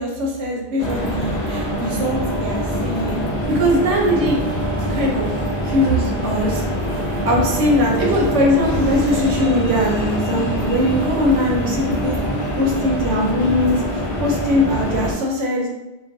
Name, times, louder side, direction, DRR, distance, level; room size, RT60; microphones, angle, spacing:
voice 1, 0.0-4.4 4.9-5.3 5.6-6.6 7.2-12.1 12.6-15.7, left 1 dB, 90° right, -1 dB, 0.9 m, -21 dB
sound 1, 0.8-15.1, equal, 65° left, 0.3 m, -24 dB
2.4 x 2.2 x 2.5 m, 1.0 s
omnidirectional pair, 1.2 m